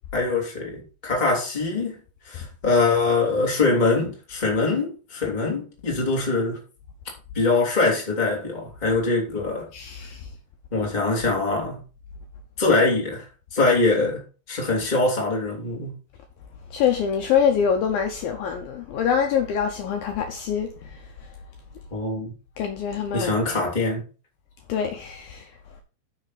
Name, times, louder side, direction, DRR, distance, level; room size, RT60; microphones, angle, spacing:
voice 1, 0.1-2.0 2.2-6.6 7.3-9.7 10.7-11.8 12.6-13.3 13.5-14.2 14.5-16.0 21.9-22.3 23.1-24.0, left 3 dB, 15° left, 2.1 m, -23 dB
voice 2, 9.7-10.3 16.7-21.0 22.6-23.4 24.7-25.5, left 7 dB, 75° left, 2.4 m, -25 dB
9.5 x 6.1 x 4.1 m
omnidirectional pair, 4.8 m